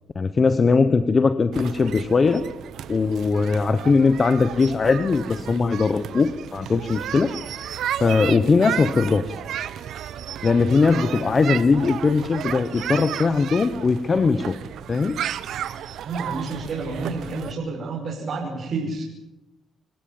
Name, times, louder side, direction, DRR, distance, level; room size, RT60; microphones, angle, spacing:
voice 1, 0.1-2.4 2.9-7.3 8.0-9.4 10.4-14.6 14.9-15.2, left 4 dB, 35° left, 11 dB, 1.1 m, -20 dB
sound 1, 1.5-17.5, right 10 dB, 75° right, 1.1 m, -33 dB
voice 2, 16.0-19.0, right 3 dB, 55° right, -3 dB, 5.9 m, -29 dB
28.5 x 16.0 x 7.4 m, 0.96 s
cardioid pair, 90°, 0 cm